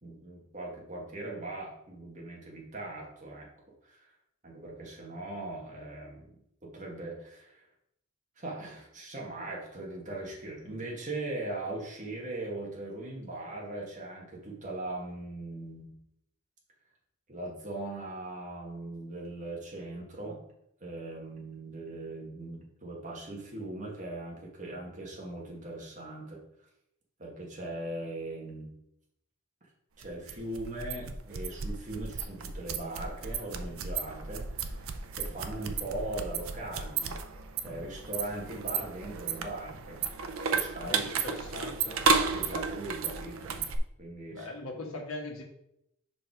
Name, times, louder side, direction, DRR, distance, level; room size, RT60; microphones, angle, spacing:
voice 1, 0.0-3.5 3.8-4.1 4.4-6.4 6.6-7.6 8.4-16.0 17.3-20.4 20.8-26.4 27.2-28.7 30.0-37.2 37.6-40.0 40.5-41.0 42.1-43.6 44.0-44.5, right 2 dB, 35° right, -2 dB, 1.7 m, -40 dB
sound 1, 30.0-43.8, right 4 dB, 75° right, 0.6 m, -33 dB
voice 2, 40.8-42.1 44.3-45.4, left 2 dB, 80° left, 1 dB, 1.5 m, -40 dB
5.4 x 5.2 x 4.7 m, 0.79 s
head